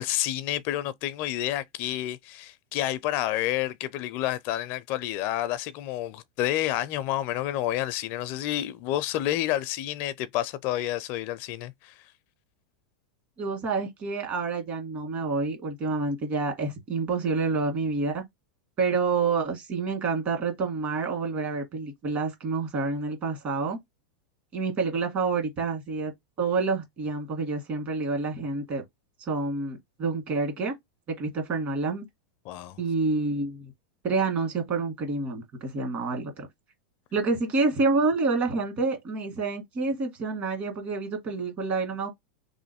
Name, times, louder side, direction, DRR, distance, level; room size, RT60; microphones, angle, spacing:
voice 1, 0.0-11.9 32.5-32.8, left 13 dB, 50° left, 0.4 m, -29 dB
voice 2, 13.4-18.2 18.8-23.8 24.5-26.1 26.4-28.8 29.2-30.7 31.2-32.1 32.8-33.7 34.0-36.5 37.1-42.1, right 4 dB, 40° right, 1.8 m, -28 dB
3.1 x 2.5 x 4.2 m
hypercardioid pair, 125°, 4 cm